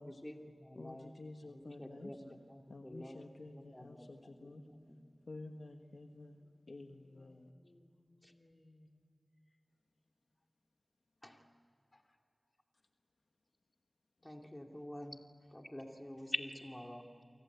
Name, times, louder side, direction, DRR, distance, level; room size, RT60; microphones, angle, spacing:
voice 1, 0.0-1.1 1.5-5.0 8.2-8.3 11.2-11.5 14.2-17.2, left 1 dB, 20° left, 3 dB, 2.6 m, -47 dB
voice 2, 0.7-2.1 2.7-4.6 5.3-6.4 6.7-7.5, left 2 dB, 80° left, 5 dB, 1.4 m, -51 dB
voice 3, 6.4-6.8 7.0-7.3 7.6-9.1 11.9-12.2, left 1 dB, 50° left, 7 dB, 3.7 m, -67 dB
29.5 x 24.5 x 8.2 m, 2.6 s
wide cardioid pair, 45°, 0 cm